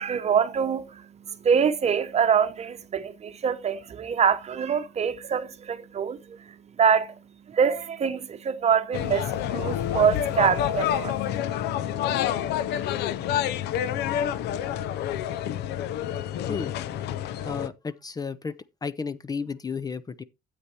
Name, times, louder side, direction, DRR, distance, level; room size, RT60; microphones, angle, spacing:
voice 1, 0.0-11.4, right 7 dB, 40° right, 0.9 m, -25 dB
sound 1, 8.9-17.7, left 10 dB, 75° left, 0.6 m, -28 dB
voice 2, 17.4-18.5 18.8-20.2, left 5 dB, 20° left, 0.5 m, -32 dB
12.5 x 8.2 x 2.8 m
cardioid pair, 110°, 17 cm